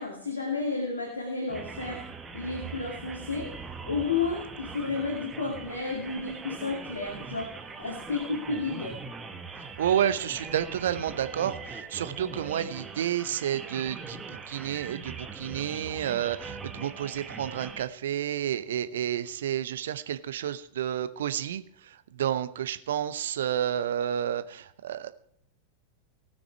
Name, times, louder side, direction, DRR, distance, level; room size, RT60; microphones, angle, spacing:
voice 1, 0.0-2.0 2.3-9.0, left 4 dB, 70° left, 0 dB, 2.3 m, -32 dB
sound 1, 1.5-17.8, right 4 dB, 15° right, 1.3 m, -41 dB
voice 2, 9.8-21.6 22.2-25.1, right 10 dB, 60° right, 12 dB, 0.8 m, -30 dB
19.0 x 6.4 x 4.5 m, 0.66 s
figure-of-eight pair, 90°, 0 cm